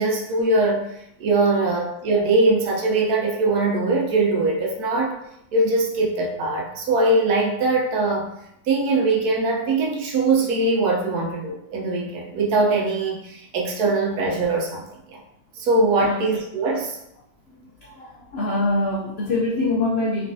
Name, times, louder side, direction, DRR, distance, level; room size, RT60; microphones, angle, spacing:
voice 1, 0.0-5.2 5.5-8.3 8.7-15.2 15.5-17.0, right 2 dB, 70° right, -1 dB, 1.2 m, -22 dB
voice 2, 17.8-20.3, left 2 dB, 80° left, -3 dB, 0.5 m, -24 dB
4.3 x 3.1 x 2.6 m, 0.78 s
omnidirectional pair, 1.8 m